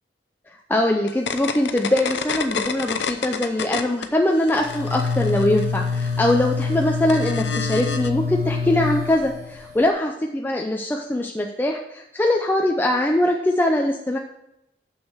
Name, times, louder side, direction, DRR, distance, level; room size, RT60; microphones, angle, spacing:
voice 1, 0.7-14.2, left 1 dB, 10° left, 1 dB, 0.5 m, -22 dB
sound 1, 1.1-4.1 4.4-8.1, left 5 dB, 70° left, 0.6 m, -30 dB
sound 2, 4.5-9.9, left 4 dB, 45° right, 1.4 m, -26 dB
6.4 x 6.3 x 6.2 m, 0.85 s
head